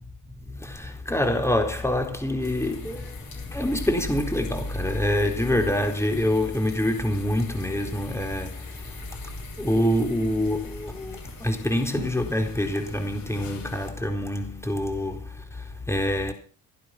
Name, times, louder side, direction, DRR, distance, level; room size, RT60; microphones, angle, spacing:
voice 1, 0.5-3.1 3.5-8.6 9.6-15.2 15.9-16.3, left 1 dB, 5° left, 4.0 m, -26 dB
sound 1, 2.4-13.9, left 4 dB, 60° left, 7.2 m, -44 dB
14.0 x 11.5 x 6.2 m
cardioid pair, 95°, 38 cm